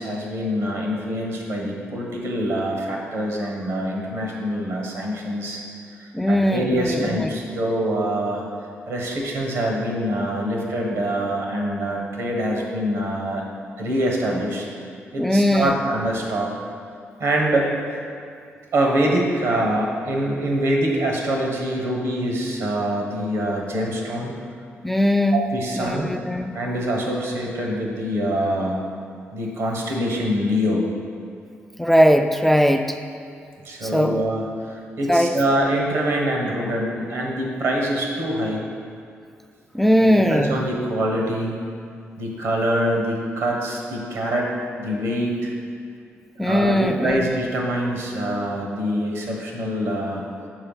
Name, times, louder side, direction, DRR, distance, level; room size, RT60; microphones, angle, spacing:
voice 1, 0.0-5.6 6.0-8.4 8.9-13.4 13.8-14.7 15.1-16.6 17.2-17.8 18.7-24.3 25.3-26.1 26.5-28.8 29.3-30.9 33.6-38.7 40.0-41.6 42.2-45.5 46.4-50.3, right 1 dB, 75° right, -1 dB, 1.4 m, -24 dB
voice 2, 6.1-7.3 15.2-15.8 24.8-25.4 25.8-26.5 31.8-33.0 33.8-34.2 35.1-35.3 39.7-40.6 46.4-47.3, equal, 5° left, 6 dB, 0.3 m, -19 dB
5.5 x 4.8 x 5.6 m, 2.3 s
cardioid pair, 85°, 5 cm